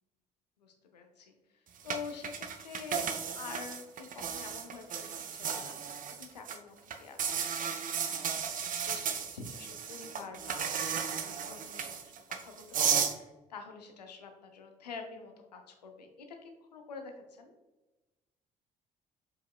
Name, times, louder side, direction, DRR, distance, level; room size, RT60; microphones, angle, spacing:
voice 1, 0.6-8.5 8.8-17.5, left 5 dB, 85° left, 4 dB, 0.5 m, -47 dB
sound 1, 1.9-6.6 6.9-13.1, right 7 dB, 40° right, 0.5 m, -34 dB
5.0 x 4.7 x 2.3 m, 1.1 s
figure-of-eight pair, 45°, 20 cm